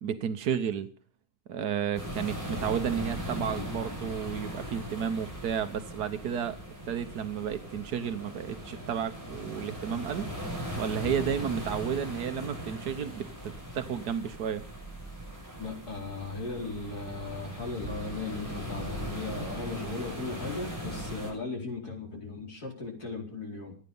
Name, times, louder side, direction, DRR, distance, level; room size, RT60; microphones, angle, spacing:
voice 1, 0.0-0.9 1.5-6.6 6.9-10.3 10.7-14.6, right 8 dB, 90° right, 9 dB, 1.6 m, -32 dB
sound 1, 1.9-21.3, equal, 10° right, 6.2 m, -39 dB
voice 2, 15.6-23.8, left 3 dB, 75° left, 0 dB, 5.1 m, -37 dB
26.5 x 9.6 x 5.5 m, 0.42 s
omnidirectional pair, 1.7 m